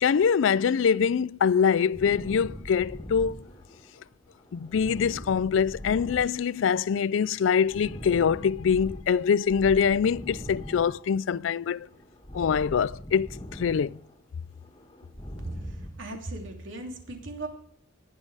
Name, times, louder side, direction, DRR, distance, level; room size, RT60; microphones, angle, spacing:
voice 1, 0.0-3.4 4.5-11.9 12.3-14.0, left 7 dB, 70° left, 0.4 m, -24 dB
sound 1, 1.9-4.0 4.3-6.9 7.1-9.1 9.5-11.4 11.7-14.2 14.5-15.9, equal, 25° left, 1.9 m, -42 dB
voice 2, 15.4-17.5, right 2 dB, 70° right, 3.0 m, -37 dB
19.5 x 7.5 x 4.9 m
head